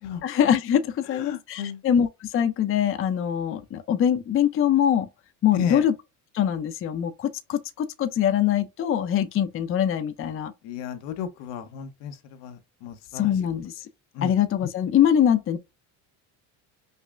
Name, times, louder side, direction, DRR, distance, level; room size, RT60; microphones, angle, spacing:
voice 1, 0.2-5.1 5.4-5.9 6.3-10.5 13.1-13.9 14.2-15.6, left 9 dB, 35° left, 0.5 m, -23 dB
voice 2, 1.1-1.8 5.5-5.9 10.6-13.3 14.1-14.3, left 8 dB, 80° left, 0.9 m, -33 dB
5.5 x 2.1 x 2.4 m
cardioid pair, 110°, 40 cm